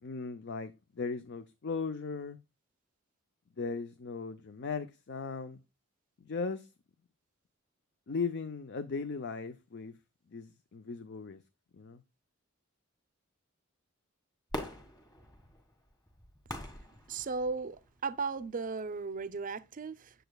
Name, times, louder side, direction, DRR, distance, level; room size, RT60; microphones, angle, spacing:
voice 1, 0.0-2.4 3.6-5.6 6.2-6.7 8.1-9.9 10.3-11.4 11.8-12.0, left 4 dB, 55° left, 0.5 m, -37 dB
Fireworks, 14.5-17.8 18.4-18.5, equal, 20° left, 1.8 m, -43 dB
voice 2, 17.1-20.1, right 4 dB, 40° right, 0.5 m, -36 dB
8.5 x 7.8 x 2.3 m
head